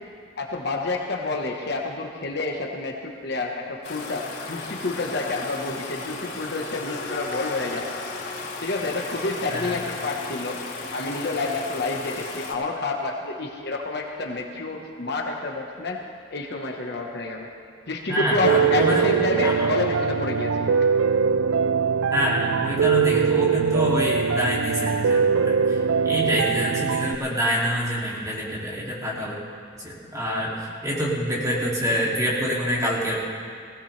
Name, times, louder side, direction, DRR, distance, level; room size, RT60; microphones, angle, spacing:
voice 1, 0.4-7.9 8.6-10.6 10.9-16.0 16.3-17.5 17.9-20.8, left 2 dB, 60° left, 1 dB, 1.3 m, -29 dB
sound 1, 3.8-12.5, left 3 dB, 90° left, 3.5 m, -35 dB
voice 2, 9.5-9.8 18.1-19.2 19.4-19.7 22.1-29.4 29.7-30.5 30.8-33.2, equal, 15° right, -5 dB, 2.7 m, -26 dB
Piano, 18.4-27.2, right 6 dB, 85° right, 0.4 m, -22 dB
19.0 x 16.5 x 3.4 m, 2.2 s
head